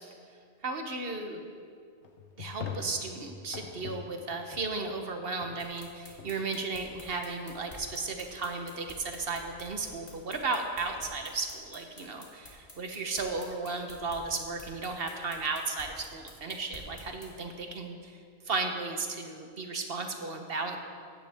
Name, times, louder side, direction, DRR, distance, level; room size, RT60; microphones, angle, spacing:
voice 1, 0.6-1.5 2.4-18.1 18.5-20.8, right 3 dB, 60° right, 4 dB, 1.2 m, -35 dB
sound 1, 2.0-5.0 5.3-7.7, left 6 dB, 85° left, 1.2 m, -44 dB
sound 2, 5.6-17.3, left 1 dB, 55° left, 2.2 m, -50 dB
15.5 x 10.0 x 3.5 m, 2.2 s
omnidirectional pair, 1.2 m